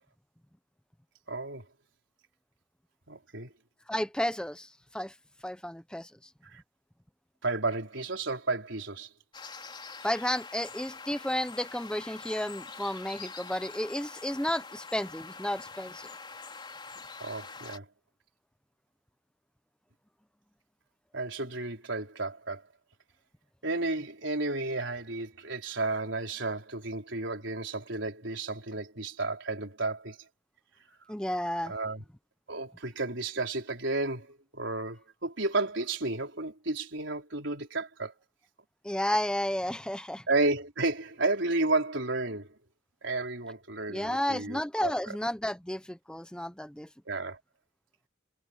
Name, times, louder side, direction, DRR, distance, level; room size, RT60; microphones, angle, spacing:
voice 1, 1.3-1.6 3.1-3.5 6.5-6.6 7.4-9.1 17.2-17.8 21.1-22.6 23.6-30.2 31.6-32.0 32.5-38.1 40.3-42.5 43.0-44.9 47.1-47.4, right 2 dB, 70° right, 4.2 m, -32 dB
voice 2, 3.9-5.1 5.4-6.1 10.0-16.1 31.1-31.7 38.8-40.2 43.9-46.9, left 1 dB, 5° left, 0.6 m, -32 dB
sound 1, 9.3-17.8, left 4 dB, 25° left, 4.4 m, -45 dB
head